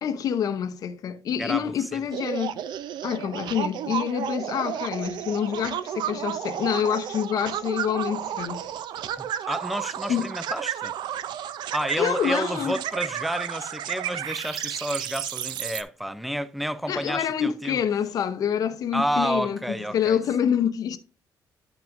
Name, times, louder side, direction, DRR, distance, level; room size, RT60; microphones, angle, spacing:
voice 1, 0.0-2.6 3.0-8.6 10.1-10.3 12.0-12.8 16.9-21.0, left 8 dB, 50° left, 0.6 m, -27 dB
voice 2, 1.4-2.0 9.2-10.9 11.7-17.8 18.9-20.2, equal, ahead, 0.3 m, -30 dB
sound 1, 2.1-15.8, right 10 dB, 70° right, 0.5 m, -32 dB
10.5 x 5.9 x 2.5 m
cardioid pair, 165°, 8 cm